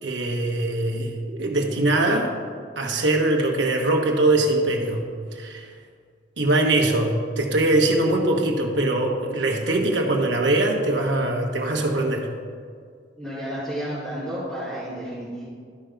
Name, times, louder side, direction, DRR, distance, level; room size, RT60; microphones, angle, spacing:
voice 1, 0.0-2.3 2.8-5.0 5.3-5.7 6.4-12.3, right 2 dB, 90° right, 2 dB, 1.2 m, -22 dB
voice 2, 13.2-15.4, equal, 5° left, -13 dB, 2.3 m, -31 dB
12.0 x 4.6 x 5.1 m, 2.1 s
head